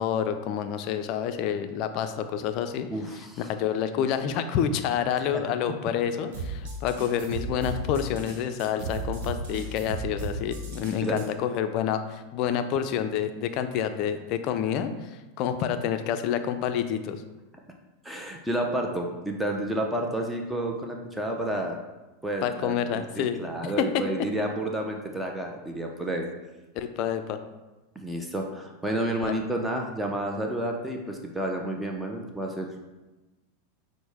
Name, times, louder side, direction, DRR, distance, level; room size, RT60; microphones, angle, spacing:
voice 1, 0.0-2.9 3.4-15.1 15.4-17.2 22.4-23.4 23.8-24.0 26.8-27.4 29.3-29.4, left 8 dB, 50° left, 9 dB, 0.3 m, -28 dB
voice 2, 2.9-3.5 5.3-5.4 11.0-11.2 18.0-21.8 22.2-26.3 28.0-32.9, right 1 dB, 5° right, 1 dB, 0.5 m, -30 dB
sound 1, 6.3-11.3, right 2 dB, 60° right, 1.1 m, -35 dB
6.0 x 2.1 x 3.4 m, 1.1 s
hypercardioid pair, 90°, 0 cm